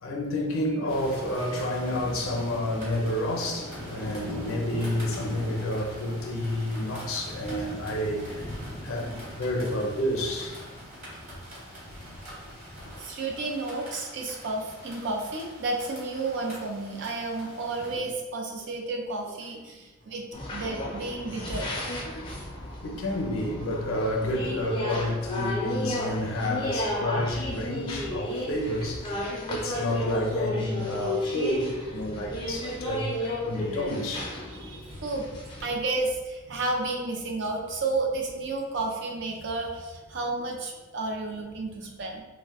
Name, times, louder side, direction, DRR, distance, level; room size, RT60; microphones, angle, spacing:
voice 1, 0.0-8.5 8.8-10.6 12.5-12.6 22.1-22.2 22.8-34.3, left 1 dB, 75° left, 0.5 m, -30 dB
sound 1, 0.9-18.0, equal, 35° right, 1.1 m, -41 dB
voice 2, 8.6-8.9 10.9-11.0 13.0-20.3 20.5-21.7 22.3-22.4 27.2-27.4 34.5-35.3 35.6-42.2, right 2 dB, 55° right, 0.4 m, -32 dB
sound 2, 20.3-35.8, left 1 dB, 25° left, 0.4 m, -33 dB
2.4 x 2.1 x 3.4 m
head